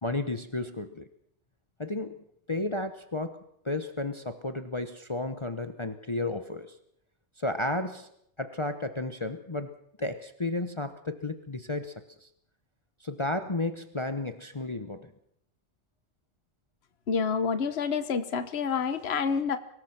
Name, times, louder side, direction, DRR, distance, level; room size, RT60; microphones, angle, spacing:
voice 1, 0.0-1.0 1.8-3.4 3.6-6.7 7.4-8.1 8.4-9.7 10.0-12.3 13.0-15.1, left 2 dB, 25° left, 9 dB, 1.0 m, -33 dB
voice 2, 17.1-19.6, left 6 dB, 60° left, 11 dB, 1.4 m, -28 dB
24.5 x 19.0 x 5.9 m, 0.72 s
omnidirectional pair, 1.2 m